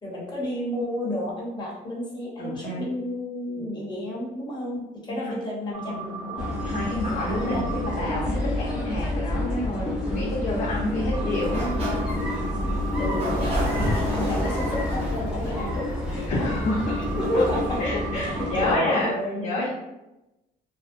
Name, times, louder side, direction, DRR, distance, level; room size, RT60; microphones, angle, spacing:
voice 1, 0.0-6.5 7.1-7.7 10.9-11.1 13.0-15.9 16.3-16.5 17.2-17.8 18.1-19.6, left 1 dB, 25° left, -5 dB, 0.9 m, -31 dB
voice 2, 2.4-2.9 3.6-3.8 5.1-5.4 6.6-11.8 13.8-13.9 16.3-16.8 17.3-17.4 17.8-19.7, left 1 dB, 55° left, -5 dB, 0.6 m, -29 dB
sound 1, 5.7-7.9 11.1-13.5 16.7-19.0, right 2 dB, 70° right, 1.2 m, -35 dB
sound 2, 6.4-18.8, left 1 dB, 5° right, 0.6 m, -29 dB
Sliding door, 11.3-17.0, equal, 35° right, 1.0 m, -31 dB
2.5 x 2.1 x 2.5 m, 0.96 s
cardioid pair, 110°, 17 cm